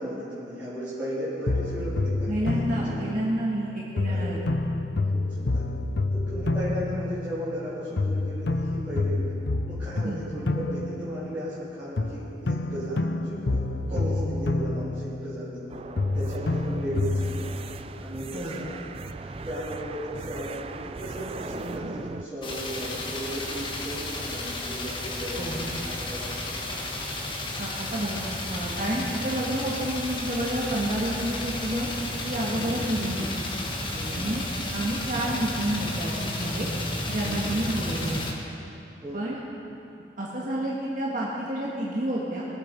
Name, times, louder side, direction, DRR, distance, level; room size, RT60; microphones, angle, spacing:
voice 1, 0.0-3.0 4.1-4.2 5.1-5.6 6.1-9.3 9.7-15.6 16.1-17.2 18.0-26.9 32.5-32.7 33.9-34.3 37.2-37.6 39.0-39.2, equal, 10° right, -14 dB, 3.7 m, -36 dB
sound 1, 1.5-3.6 4.0-7.7 8.0-11.6 12.0-15.7 16.0-17.6, left 2 dB, 80° left, 0.6 m, -28 dB
voice 2, 2.3-4.4 10.0-10.2 13.9-14.3 18.3-18.5 25.3-25.6 27.6-28.2 28.5-31.9 32.2-33.3 34.1-34.4 34.7-36.7 37.1-38.2 39.1-39.4 40.2-42.5, right 1 dB, 50° right, -5 dB, 1.7 m, -29 dB
sound 2, 15.7-22.2, right 3 dB, 35° right, 0.4 m, -38 dB
sound 3, 22.4-38.3, left 1 dB, 30° left, 1.5 m, -32 dB
22.0 x 8.4 x 5.3 m, 2.8 s
head